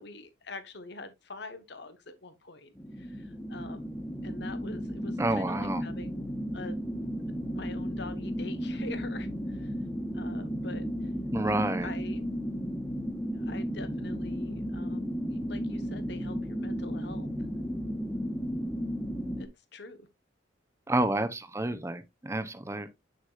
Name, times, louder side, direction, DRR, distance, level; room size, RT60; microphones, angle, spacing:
voice 1, 0.0-3.9 4.2-6.3 6.5-7.0 7.3-9.7 10.1-11.1 11.8-12.2 13.3-17.3 19.4-20.1, left 3 dB, 60° left, 1.2 m, -45 dB
sound 1, 2.8-19.5, equal, 10° left, 1.0 m, -34 dB
voice 2, 5.2-5.8 11.3-11.9 20.9-22.9, right 1 dB, 15° right, 0.7 m, -29 dB
8.1 x 6.3 x 2.5 m
head